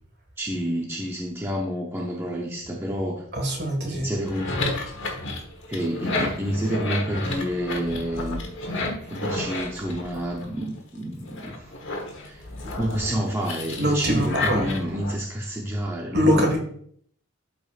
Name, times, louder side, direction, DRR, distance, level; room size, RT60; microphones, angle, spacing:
voice 1, 0.4-3.2 3.8-4.7 5.7-8.4 9.1-11.7 12.2-12.5 12.7-16.6, equal, 10° right, -1 dB, 0.7 m, -29 dB
voice 2, 3.3-4.0 13.8-14.7 16.1-16.6, equal, 50° right, 3 dB, 1.8 m, -22 dB
sound 1, 4.1-10.8 11.2-15.1, left 2 dB, 55° left, 1.3 m, -31 dB
12.0 x 5.1 x 2.5 m, 0.64 s
head